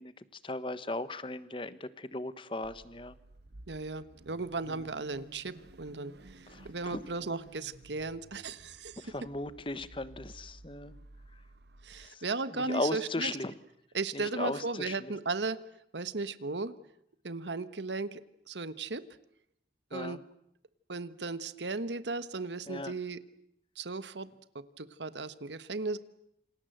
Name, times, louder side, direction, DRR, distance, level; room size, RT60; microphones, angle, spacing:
voice 1, 0.0-3.1 4.7-4.8 6.5-7.0 9.0-10.9 12.0-12.2 12.5-13.5 14.1-15.1 19.9-20.2 22.7-22.9, left 2 dB, 30° left, 15 dB, 1.2 m, -37 dB
Car / Idling / Accelerating revving vroom, 2.6-12.1, right 1 dB, 70° right, 1.1 m, -54 dB
voice 2, 3.7-9.1 11.8-13.3 13.9-15.6 15.9-16.7 17.2-19.0 19.9-20.2 20.9-23.2 23.8-24.3 24.5-26.0, right 3 dB, 90° right, 14 dB, 1.3 m, -36 dB
28.0 x 26.5 x 7.9 m, 0.75 s
head